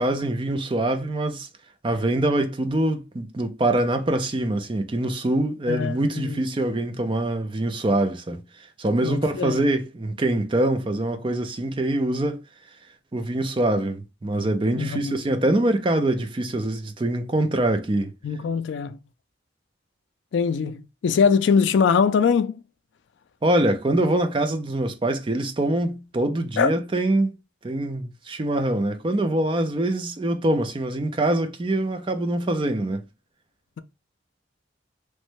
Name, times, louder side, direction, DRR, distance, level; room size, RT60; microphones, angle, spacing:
voice 1, 0.0-1.5 1.8-12.4 13.1-18.1 23.4-27.3 27.6-33.0, right 1 dB, 25° right, 0.4 m, -24 dB
voice 2, 5.7-6.4 9.0-9.6 14.7-15.2 18.2-19.0 20.3-22.6 26.6-26.7, left 6 dB, 70° left, 0.3 m, -22 dB
3.1 x 2.1 x 3.1 m
head